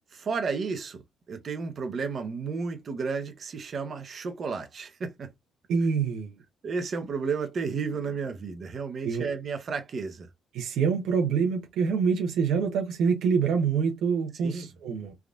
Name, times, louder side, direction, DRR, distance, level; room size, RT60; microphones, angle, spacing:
voice 1, 0.2-1.0 1.3-5.3 6.6-10.3 14.4-14.7, right 5 dB, 50° right, 0.8 m, -32 dB
voice 2, 5.7-6.3 9.0-9.2 10.5-15.1, right 6 dB, 85° right, 0.7 m, -26 dB
3.4 x 2.5 x 2.3 m
cardioid pair, 90°, 0 cm